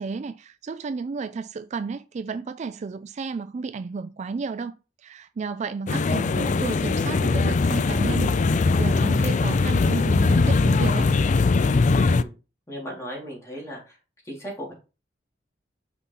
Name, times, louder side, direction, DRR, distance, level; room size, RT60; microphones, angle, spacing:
voice 1, 0.0-11.1, right 4 dB, 40° right, 0.3 m, -32 dB
sound 1, 5.9-12.2, left 3 dB, 40° left, 0.4 m, -21 dB
voice 2, 12.7-13.8 14.3-14.7, equal, 15° left, 3.6 m, -36 dB
6.0 x 5.3 x 4.2 m
head